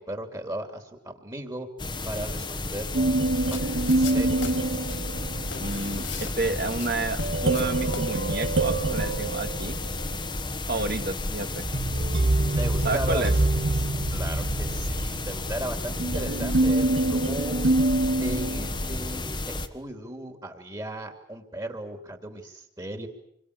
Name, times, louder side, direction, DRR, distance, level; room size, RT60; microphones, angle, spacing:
voice 1, 0.0-1.7 2.0-3.6 3.9-4.9 12.5-13.3 13.8-17.7 18.2-23.1, right 1 dB, 20° right, 5 dB, 3.1 m, -37 dB
sound 1, 1.8-19.7, left 2 dB, 25° left, 1.6 m, -32 dB
sound 2, 2.9-5.6 7.2-10.2 11.6-18.9, right 2 dB, 70° right, 1.6 m, -26 dB
sound 3, 3.2-8.7, left 5 dB, 75° left, 4.1 m, -42 dB
voice 2, 5.6-9.8 10.7-11.6 12.8-13.3, right 2 dB, 50° right, 6 dB, 2.4 m, -30 dB
28.0 x 23.0 x 8.4 m, 0.78 s
head